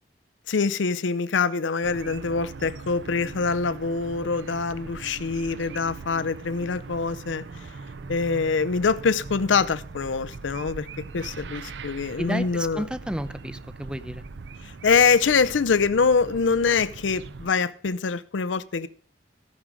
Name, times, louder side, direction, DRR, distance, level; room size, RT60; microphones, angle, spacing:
voice 1, 0.5-7.4 8.1-10.9 11.1-12.8 14.6-18.9, left 5 dB, 85° left, 0.6 m, -24 dB
sound 1, 1.8-17.5, right 4 dB, 70° right, 0.6 m, -41 dB
voice 2, 12.2-14.2, equal, 5° right, 0.5 m, -32 dB
15.0 x 6.2 x 5.2 m
head